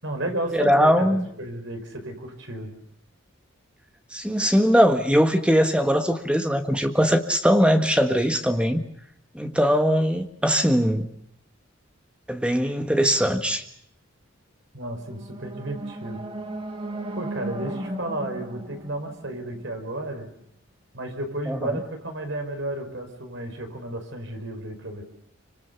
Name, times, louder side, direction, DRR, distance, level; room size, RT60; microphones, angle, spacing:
voice 1, 0.0-2.8 14.7-16.3 17.2-20.3 20.9-25.0, right 1 dB, 65° right, 4 dB, 5.3 m, -32 dB
voice 2, 0.5-1.2 4.1-8.9 9.3-11.1 12.3-13.6 21.5-21.8, equal, 5° right, 6 dB, 1.6 m, -21 dB
sound 1, 14.9-20.0, right 1 dB, 25° right, 1.9 m, -36 dB
26.5 x 25.5 x 7.0 m, 0.71 s
head